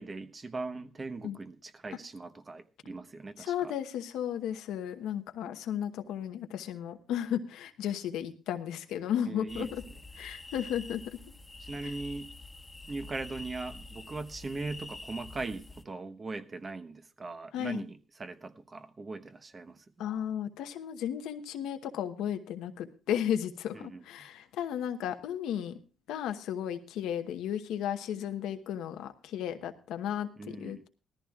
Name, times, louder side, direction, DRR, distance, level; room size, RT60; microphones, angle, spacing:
voice 1, 0.0-3.7 9.3-9.8 11.6-12.3 12.9-19.8 23.7-24.3 30.4-30.8, right 3 dB, 30° right, 1.0 m, -40 dB
voice 2, 3.4-9.7 10.2-11.0 11.8-11.9 17.5-17.8 20.0-25.8 26.1-30.9, left 10 dB, 90° left, 1.0 m, -34 dB
sound 1, 9.5-15.8, left 2 dB, 15° left, 1.3 m, -46 dB
18.5 x 14.0 x 2.4 m
cardioid pair, 90°, 0 cm